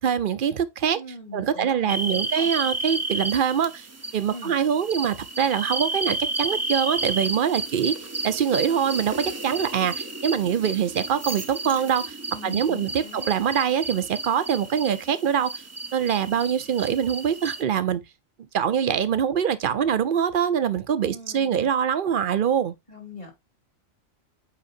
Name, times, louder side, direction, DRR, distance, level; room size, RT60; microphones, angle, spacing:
voice 1, 0.0-1.0 1.3-3.9 4.1-7.9 8.2-12.2 12.4-15.6 15.9-18.0 18.5-22.7, right 8 dB, 50° right, 0.7 m, -24 dB
voice 2, 0.9-2.5 4.3-4.5 12.3-13.3 21.0-21.7 22.9-23.3, left 2 dB, 35° left, 2.9 m, -41 dB
sound 1, 1.9-17.6, right 2 dB, 25° right, 0.3 m, -32 dB
8.5 x 5.0 x 2.6 m
omnidirectional pair, 1.3 m